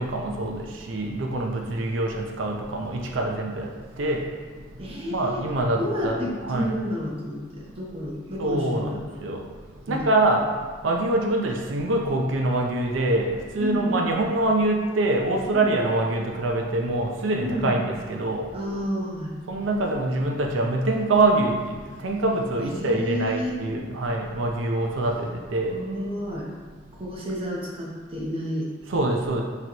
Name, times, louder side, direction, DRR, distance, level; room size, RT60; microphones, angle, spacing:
voice 1, 0.0-3.7 4.0-4.2 5.1-6.2 6.4-6.7 8.4-9.4 9.9-10.4 10.8-18.5 19.5-21.8 22.0-25.7 28.9-29.4, right 2 dB, 90° right, 1 dB, 0.5 m, -24 dB
voice 2, 4.8-5.4 5.8-9.2 9.9-10.0 13.6-14.1 15.5-16.0 17.4-17.8 18.5-19.3 22.6-23.5 25.7-26.5 27.0-28.7, equal, 30° right, -3 dB, 0.7 m, -31 dB
6.0 x 3.0 x 2.9 m, 1.5 s
head